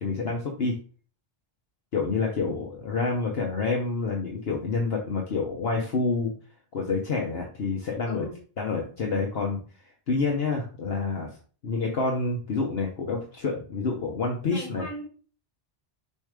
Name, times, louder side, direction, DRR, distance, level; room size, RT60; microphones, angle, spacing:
voice 1, 0.0-0.7 1.9-6.3 6.7-8.2 8.6-9.6 10.1-11.3 11.6-14.8, left 4 dB, 60° left, 0 dB, 1.2 m, -28 dB
voice 2, 8.0-8.4 14.5-15.0, equal, 20° left, -5 dB, 3.1 m, -37 dB
7.1 x 2.8 x 4.8 m, 0.40 s
omnidirectional pair, 1.2 m